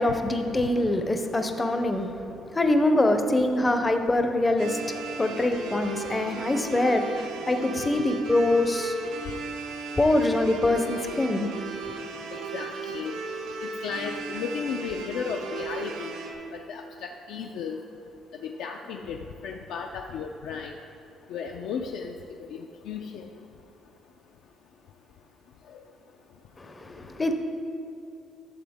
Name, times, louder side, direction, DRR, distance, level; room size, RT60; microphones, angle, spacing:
voice 1, 0.0-8.9 10.0-11.5 26.6-27.3, left 2 dB, 15° left, 6 dB, 0.5 m, -24 dB
sound 1, 4.6-16.3, right 4 dB, 85° right, 1.2 m, -36 dB
voice 2, 12.5-13.2 13.6-16.1 16.7-17.8 18.4-20.7 21.3-22.1 22.5-22.6 22.9-23.3, left 6 dB, 70° left, 2 dB, 0.5 m, -34 dB
12.5 x 7.4 x 3.5 m, 2.8 s
cardioid pair, 175°, 0 cm